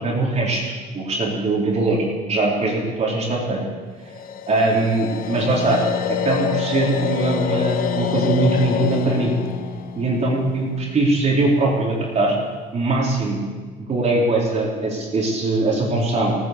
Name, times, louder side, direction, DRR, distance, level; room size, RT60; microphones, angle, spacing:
voice 1, 0.0-3.6 4.5-5.8 6.2-9.3 10.0-12.3 12.7-13.4 13.9-16.4, right 2 dB, 40° right, -4 dB, 4.0 m, -21 dB
sound 1, 4.1-11.2, left 8 dB, 60° left, 1.1 m, -26 dB
17.0 x 10.0 x 6.9 m, 1.5 s
cardioid pair, 110°, 17 cm